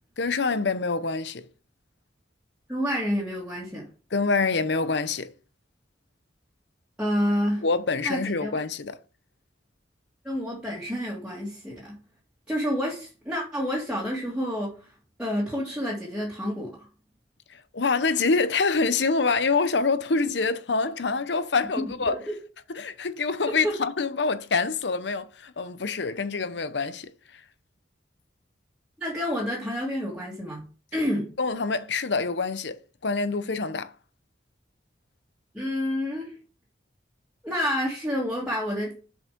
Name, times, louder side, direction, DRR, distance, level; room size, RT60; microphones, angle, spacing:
voice 1, 0.2-1.5 4.1-5.3 7.6-9.0 17.7-22.1 22.7-27.1 31.4-33.9, left 4 dB, 70° left, 0.8 m, -26 dB
voice 2, 2.7-3.9 7.0-7.6 8.0-8.5 10.2-12.0 12.5-14.9 15.2-16.9 21.8-22.4 23.6-23.7 29.0-30.7 30.9-31.3 35.5-36.3 37.4-38.9, equal, 5° right, 2.3 m, -29 dB
7.4 x 5.1 x 5.2 m
head